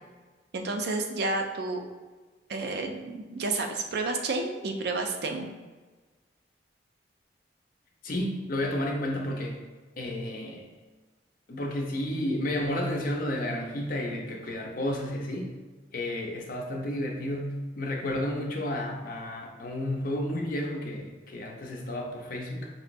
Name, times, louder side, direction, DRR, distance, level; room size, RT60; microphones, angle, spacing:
voice 1, 0.5-1.8 2.5-5.5, right 3 dB, 60° right, 4 dB, 0.5 m, -30 dB
voice 2, 8.0-9.6 10.0-10.7 11.5-15.5 15.9-22.7, left 1 dB, 50° left, 0 dB, 0.6 m, -31 dB
5.3 x 3.0 x 2.6 m, 1.3 s
head